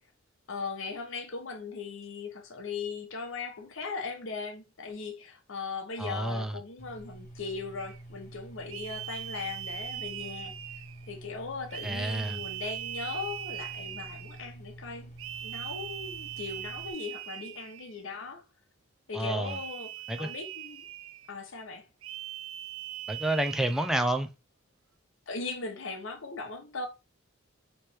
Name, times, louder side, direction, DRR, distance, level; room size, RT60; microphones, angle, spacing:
voice 1, 0.5-10.6 11.1-15.1 15.4-18.4 19.1-20.9 21.3-21.8 25.3-26.9, left 4 dB, 75° left, 0.9 m, -38 dB
voice 2, 6.0-6.6 11.8-12.4 19.1-19.6 20.1-20.3 23.1-24.3, right 1 dB, ahead, 0.4 m, -29 dB
sound 1, 6.8-16.9, right 1 dB, 35° left, 1.0 m, -48 dB
sound 2, 7.8-8.0 8.7-11.1 11.7-14.4 15.2-18.0 19.4-21.3 22.0-24.1, right 12 dB, 75° right, 0.4 m, -40 dB
3.3 x 3.1 x 4.3 m
head